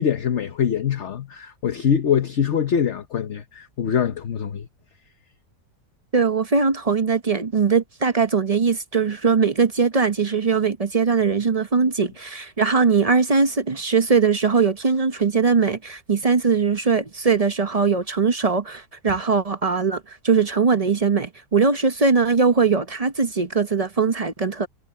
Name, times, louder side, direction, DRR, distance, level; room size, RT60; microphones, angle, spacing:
voice 1, 0.0-4.7, left 8 dB, 50° left, 1.2 m, -23 dB
voice 2, 6.1-24.7, right 5 dB, 35° right, 0.7 m, -20 dB
omnidirectional pair, 1.7 m